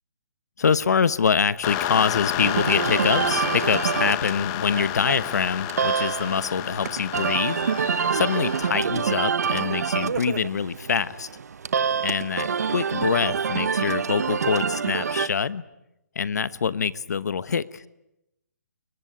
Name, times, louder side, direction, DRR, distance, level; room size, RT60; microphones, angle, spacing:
voice 1, 0.6-7.6 8.1-11.3 12.0-15.6 16.1-17.9, left 6 dB, 65° left, 16 dB, 1.1 m, -25 dB
sound 1, 1.6-8.7, left 14 dB, 20° left, 1.0 m, -30 dB
sound 2, 2.4-15.3, right 6 dB, 65° right, 1.2 m, -27 dB
29.0 x 22.5 x 9.2 m, 0.86 s
hypercardioid pair, 165°, 9 cm